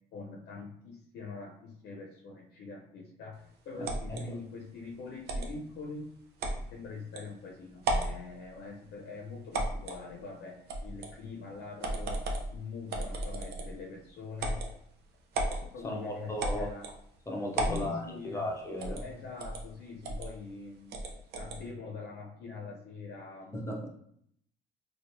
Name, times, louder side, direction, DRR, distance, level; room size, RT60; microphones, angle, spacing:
voice 1, 0.1-6.1 6.6-14.6 15.7-16.9 17.7-18.6 19.0-21.0 21.4-23.6, left 4 dB, 70° left, -1 dB, 0.6 m, -43 dB
voice 2, 3.8-4.2 15.8-16.7 17.3-19.0 23.5-23.9, left 1 dB, 15° left, -1 dB, 0.7 m, -36 dB
sound 1, 3.8-4.2 5.3-5.5 6.4-6.6 7.2-7.3 7.8-8.2 9.5-10.0 10.7-11.1 11.8-12.5 12.9-13.8 14.4-14.7 15.3-15.6 16.4-17.0 17.5-17.9 18.8-19.1 19.4-19.6 20.0-20.3 20.9-21.6, right 2 dB, 75° right, 0.7 m, -33 dB
4.4 x 2.3 x 2.6 m, 0.69 s
cardioid pair, 110°, 17 cm